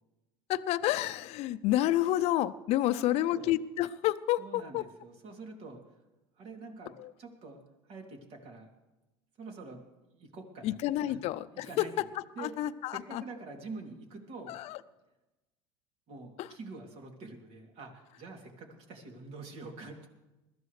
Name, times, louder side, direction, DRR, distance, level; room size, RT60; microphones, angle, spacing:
voice 1, 0.5-4.9 7.0-7.1 10.6-13.2 14.5-14.8 16.4-16.5, left 14 dB, 55° left, 13 dB, 0.6 m, -30 dB
voice 2, 2.9-3.5 4.4-5.8 6.4-7.6 7.9-8.7 9.4-9.8 10.1-11.2 11.5-11.9 12.4-12.5 12.8-14.5 16.1-20.1, right 3 dB, 55° right, 2 dB, 2.8 m, -46 dB
21.5 x 14.0 x 3.2 m, 1.0 s
supercardioid pair, 90°, 13 cm